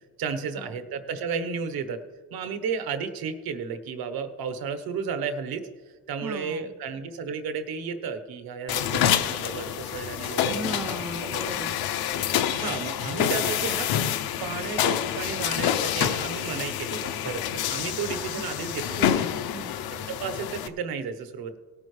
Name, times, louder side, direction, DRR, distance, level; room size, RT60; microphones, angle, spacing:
voice 1, 0.2-2.0 2.3-5.6 6.1-11.4 12.5-13.9 14.4-19.1 19.9-21.6, right 6 dB, 75° right, 9 dB, 1.2 m, -33 dB
voice 2, 6.2-6.7 10.5-11.7 19.0-19.7, right 2 dB, 5° right, 8 dB, 0.4 m, -37 dB
sound 1, 8.7-20.7, left 10 dB, 80° left, 0.8 m, -27 dB
18.0 x 9.4 x 3.3 m, 1.3 s
cardioid pair, 175°, 37 cm